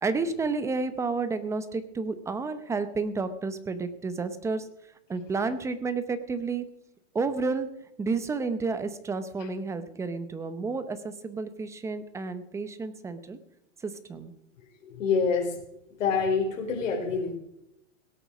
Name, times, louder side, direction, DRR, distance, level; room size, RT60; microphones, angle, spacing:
voice 1, 0.0-4.7 5.1-6.7 7.1-7.7 8.0-13.4 13.8-14.3, right 4 dB, 5° right, 11 dB, 0.7 m, -31 dB
voice 2, 14.8-15.5 16.0-17.4, left 5 dB, 75° left, 1 dB, 4.1 m, -26 dB
17.5 x 8.3 x 6.2 m, 0.81 s
hypercardioid pair, 150°, 39 cm